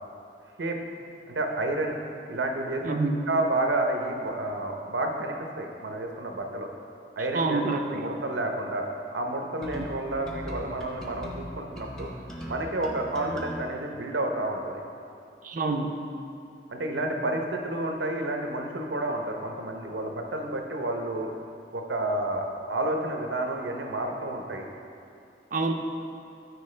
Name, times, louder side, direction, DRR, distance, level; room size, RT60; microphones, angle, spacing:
voice 1, 1.3-1.9 2.3-3.0 3.3-6.7 7.2-7.6 7.9-12.1 12.5-14.8 16.7-21.3 21.7-24.7, right 2 dB, 90° right, 2 dB, 0.8 m, -30 dB
voice 2, 2.8-3.2 7.3-8.1 9.7-9.9 15.4-16.0 25.5-25.7, right 3 dB, 50° right, 4 dB, 0.5 m, -27 dB
sound 1, 9.6-13.6, equal, 5° left, 0.8 m, -39 dB
12.0 x 4.7 x 3.3 m, 2.6 s
head